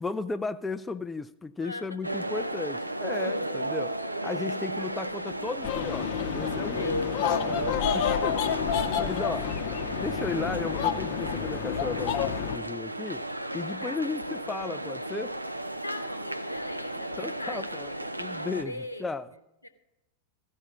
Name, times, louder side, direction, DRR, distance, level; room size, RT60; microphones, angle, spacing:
voice 1, 0.0-4.0 4.2-8.4 9.0-9.5 10.0-13.3 13.5-15.4 17.2-17.9 18.2-19.3, left 4 dB, 10° left, 0.3 m, -35 dB
voice 2, 1.6-2.1 3.4-3.6 6.7-7.6 8.1-9.6 13.8-14.4 15.8-18.2 18.6-19.1 19.6-19.7, left 1 dB, 85° left, 0.9 m, -43 dB
sound 1, 2.0-18.6, right 1 dB, 85° right, 0.5 m, -34 dB
sound 2, 5.6-12.6, left 9 dB, 45° left, 0.8 m, -30 dB
14.5 x 5.4 x 7.2 m
figure-of-eight pair, 90°, 0 cm